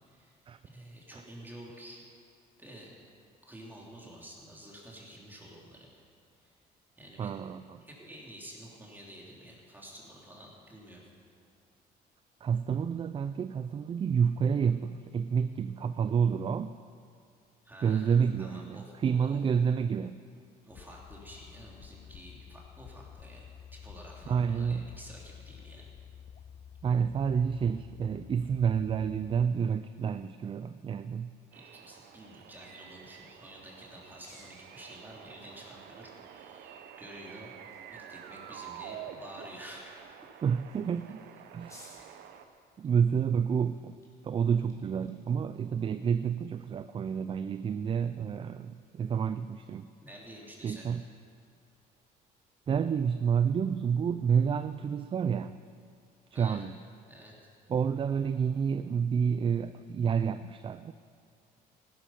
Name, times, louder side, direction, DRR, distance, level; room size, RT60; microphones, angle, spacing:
voice 1, 0.1-0.4 0.6-2.1 2.6-3.0 3.5-5.9 6.4-6.6 7.0-7.4 7.8-11.1 17.6-19.4 20.6-23.5 23.7-25.9 31.5-37.5 37.9-40.1 41.7-42.3 50.0-50.9 56.3-56.6 57.1-57.4, right 1 dB, 10° right, -3 dB, 3.0 m, -50 dB
voice 2, 7.2-7.8 12.4-16.7 17.8-20.2 24.3-24.9 26.8-31.3 40.4-41.2 41.5-41.9 42.8-44.0 44.2-49.9 50.6-51.0 52.7-55.6 56.3-56.8 57.7-60.9, right 7 dB, 30° right, 12 dB, 0.4 m, -29 dB
sound 1, 20.7-29.5, left 8 dB, 45° left, 0.6 m, -50 dB
sound 2, 31.5-42.5, right 9 dB, 75° right, 1.0 m, -49 dB
sound 3, 32.9-47.4, left 1 dB, 20° left, 3.3 m, -63 dB
15.5 x 13.0 x 5.7 m, 2.3 s
cardioid pair, 110°, 17 cm